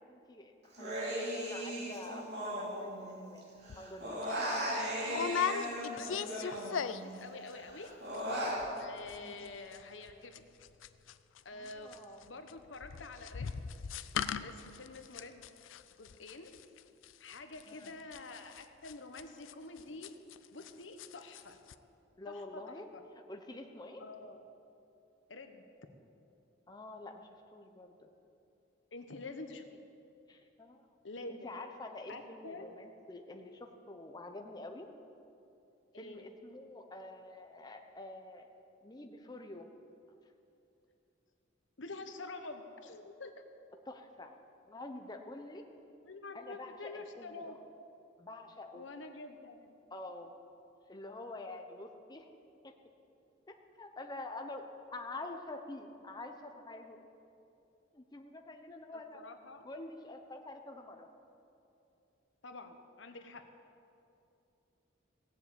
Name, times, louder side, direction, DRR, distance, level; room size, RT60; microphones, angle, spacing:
voice 1, 0.1-3.5 3.8-4.3 9.2-9.3 11.5-12.3 17.7-17.9 22.2-22.9 23.3-24.0 26.7-28.1 30.3-30.8 31.4-34.9 36.0-38.5 38.8-39.7 43.9-44.3 44.7-45.6 46.3-47.4 48.2-48.8 49.9-50.3 50.9-52.3 52.6-52.7 53.8-57.1 57.9-59.2 59.6-61.1, left 2 dB, 20° left, 4 dB, 0.8 m, -47 dB
Human voice, 0.7-3.4 3.6-7.1 7.5-8.6, equal, 60° right, 3.0 m, -37 dB
sound 1, 3.7-3.9 4.2-4.4 5.1-7.2 7.5-7.9 8.1-8.2 8.5-8.8 9.1-20.7 21.0-21.4 21.7-21.8, left 7 dB, 90° left, 0.5 m, -38 dB
voice 2, 4.4-4.8 5.1-7.9 8.8-10.3 11.4-12.0 12.3-13.6 14.4-15.4 16.0-16.5 17.2-20.1 20.5-21.6 22.3-23.0 24.0-24.4 25.3-25.6 28.9-29.6 31.0-31.5 32.1-32.8 35.9-36.3 41.8-43.3 46.1-47.6 48.7-49.7 58.9-59.7 62.4-63.4, left 3 dB, 75° left, 7 dB, 1.1 m, -47 dB
17.0 x 7.3 x 8.3 m, 2.7 s
head